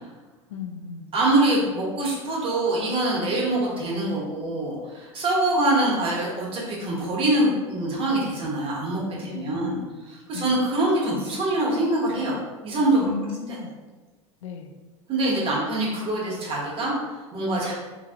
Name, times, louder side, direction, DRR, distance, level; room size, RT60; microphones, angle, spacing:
voice 1, 0.5-1.1 9.2-10.0 10.3-10.5 13.0-13.7 14.4-14.7, left 6 dB, 80° left, 4 dB, 0.4 m, -35 dB
voice 2, 1.1-9.8 10.0-12.4 12.6-13.1 15.1-17.7, right 1 dB, 35° right, -4 dB, 1.0 m, -24 dB
2.8 x 2.6 x 2.4 m, 1.3 s
hypercardioid pair, 85°, 16 cm